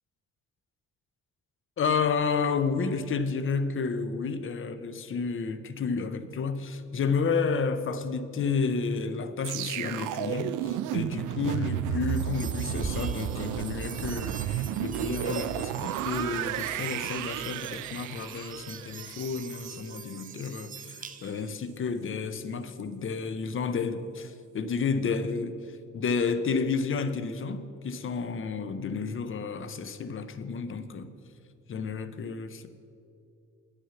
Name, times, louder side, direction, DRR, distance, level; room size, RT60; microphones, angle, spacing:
voice 1, 1.8-31.1 31.7-32.7, left 5 dB, 45° left, 13 dB, 0.7 m, -31 dB
sound 1, 9.4-20.5 20.9-21.1, right 11 dB, 85° right, 0.5 m, -33 dB
sound 2, 12.0-21.5, right 5 dB, 25° right, 0.6 m, -43 dB
9.3 x 6.5 x 6.9 m, 2.5 s
cardioid pair, 90°, 30 cm